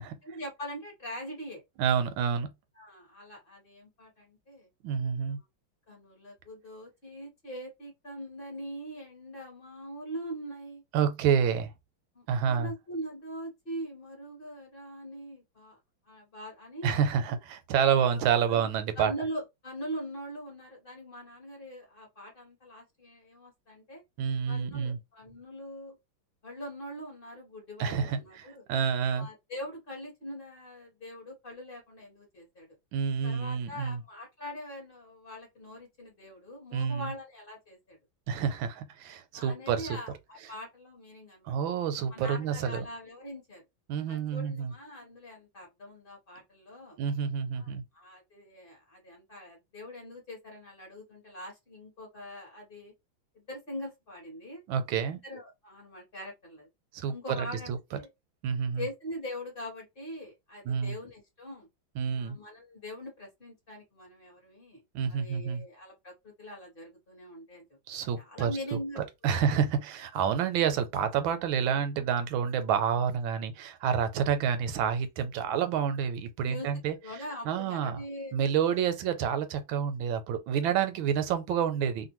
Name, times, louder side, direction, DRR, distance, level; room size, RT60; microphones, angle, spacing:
voice 1, 0.2-1.6 2.7-4.7 5.3-5.4 5.9-10.8 12.1-15.8 16.0-17.2 17.9-18.2 18.5-18.7 18.9-24.0 24.5-26.0 26.4-28.6 29.1-32.8 33.2-38.0 39.3-41.5 42.1-43.6 44.1-47.0 47.5-52.9 53.3-54.6 55.1-56.7 57.1-58.1 58.8-61.7 62.1-64.8 65.1-67.6 68.1-69.6 70.3-70.4 76.4-76.7 77.0-78.3 78.7-78.8, equal, 35° left, 1.1 m, -42 dB
voice 2, 1.8-2.5 4.8-5.4 10.9-11.7 12.3-12.7 16.8-19.1 24.2-25.0 27.8-29.3 32.9-34.0 36.7-37.1 38.3-40.0 41.4-42.8 43.9-44.7 47.0-47.8 54.7-55.2 56.9-57.8 58.4-58.8 60.7-61.0 62.0-62.4 64.9-65.6 67.9-68.5 69.0-77.0 77.4-78.0 78.3-82.1, right 7 dB, 85° right, 1.4 m, -28 dB
3.1 x 2.5 x 2.9 m
omnidirectional pair, 2.2 m